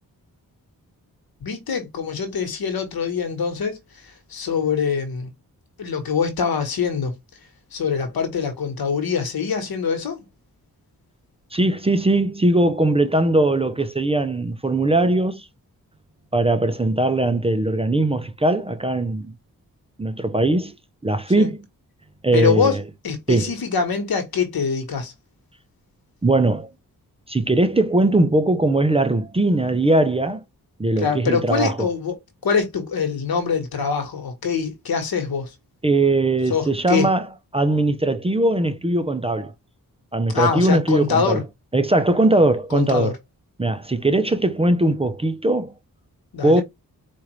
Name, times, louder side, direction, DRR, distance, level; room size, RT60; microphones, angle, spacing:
voice 1, 1.4-5.3 5.8-7.1 7.7-10.3 21.3-21.5 22.3-22.8 23.0-25.1 31.0-35.5 36.5-37.1 40.3-41.4 42.7-43.1 46.3-46.6, left 6 dB, 80° left, 1.2 m, -24 dB
voice 2, 11.5-15.5 16.3-19.3 20.0-20.7 21.0-21.6 22.2-22.8 23.3-23.5 26.2-26.7 27.3-30.4 30.8-31.8 35.8-37.2 37.5-39.5 40.1-41.4 41.7-43.1 43.6-45.7 46.4-46.6, right 2 dB, 15° right, 0.5 m, -20 dB
4.5 x 2.4 x 3.0 m
cardioid pair, 75°, 36 cm